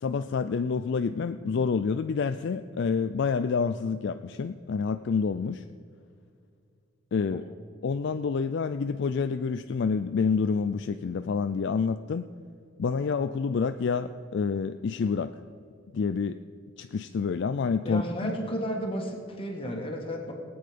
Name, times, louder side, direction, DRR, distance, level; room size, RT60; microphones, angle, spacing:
voice 1, 0.0-5.6 7.1-7.4 7.8-12.3 12.8-15.3 15.9-16.4 16.8-18.3, left 5 dB, 55° left, 10 dB, 0.4 m, -28 dB
voice 2, 17.8-20.3, equal, 25° left, 1 dB, 1.7 m, -33 dB
18.5 x 8.7 x 5.1 m, 2.3 s
head